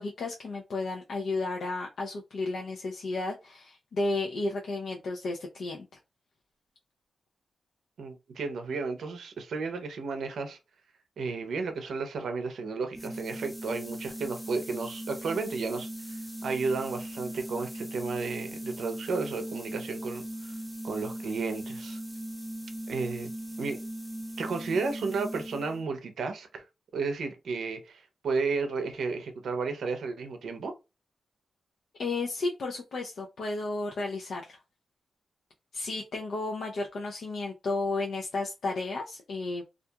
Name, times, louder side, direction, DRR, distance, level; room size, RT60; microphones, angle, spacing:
voice 1, 0.0-5.9 32.0-34.6 35.7-39.6, left 3 dB, 70° left, 0.5 m, -33 dB
voice 2, 8.0-10.6 11.2-15.9 16.4-20.5 20.8-22.0 22.9-23.3 23.6-23.8 24.4-26.6 26.9-30.7, right 4 dB, 80° right, 0.5 m, -33 dB
sound 1, 12.9-25.9, right 1 dB, ahead, 0.4 m, -39 dB
2.7 x 2.4 x 2.2 m
wide cardioid pair, 110°, 0 cm